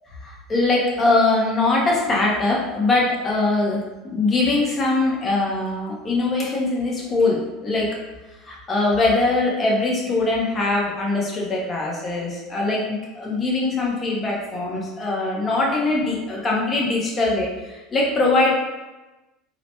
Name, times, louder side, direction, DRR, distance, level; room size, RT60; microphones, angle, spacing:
voice 1, 0.2-7.9 8.4-18.5, left 2 dB, 25° left, -3 dB, 1.0 m, -22 dB
3.8 x 2.2 x 3.0 m, 1.1 s
supercardioid pair, 105°, 0 cm